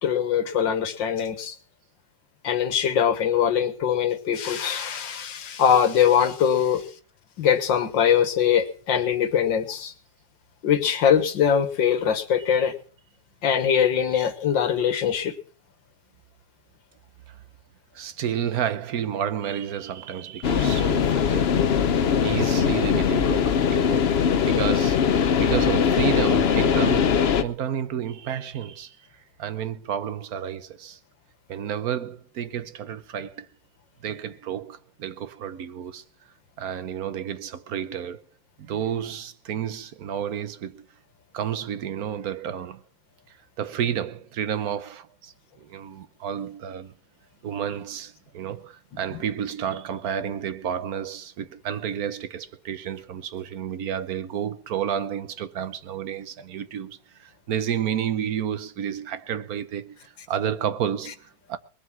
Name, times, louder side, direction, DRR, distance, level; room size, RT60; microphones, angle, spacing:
voice 1, 0.0-1.6 2.4-6.9 7.4-9.9 10.6-12.7 13.4-15.3 49.1-49.2, left 8 dB, 85° left, 2.1 m, -22 dB
voice 2, 17.9-21.7 22.2-25.1 25.4-31.0 31.5-33.5 34.0-36.0 36.6-38.3 38.6-40.9 41.3-42.8 43.3-46.9 47.4-61.6, right 9 dB, 60° right, 1.2 m, -31 dB
sound 1, 20.4-27.4, left 7 dB, 55° left, 0.7 m, -21 dB
21.0 x 7.7 x 6.1 m
omnidirectional pair, 2.0 m